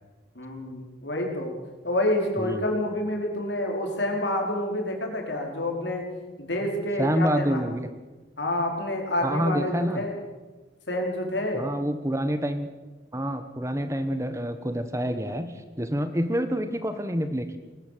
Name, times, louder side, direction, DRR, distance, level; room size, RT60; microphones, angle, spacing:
voice 1, 0.3-1.5 1.8-6.1 6.4-7.6 8.4-10.2 10.9-11.7, left 1 dB, 90° left, 1 dB, 4.7 m, -28 dB
voice 2, 7.0-7.9 9.2-10.0 11.5-12.7 13.1-17.6, equal, 15° right, 9 dB, 1.3 m, -27 dB
21.0 x 19.0 x 7.6 m, 1.2 s
head